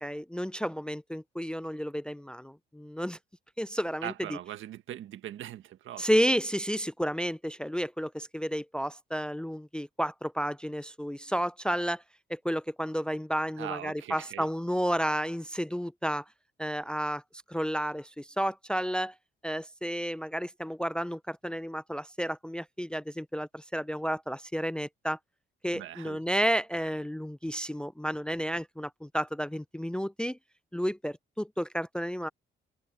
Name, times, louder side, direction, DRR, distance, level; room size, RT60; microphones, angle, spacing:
voice 1, 0.0-3.2 3.6-4.4 6.0-12.0 12.3-16.2 16.6-17.2 17.5-19.1 19.4-25.2 25.6-30.4 30.7-32.3, equal, 5° left, 0.5 m, -31 dB
voice 2, 4.0-6.1 13.6-14.5 25.7-26.2, right 12 dB, 80° right, 1.6 m, -40 dB
cardioid pair, 90°, 20 cm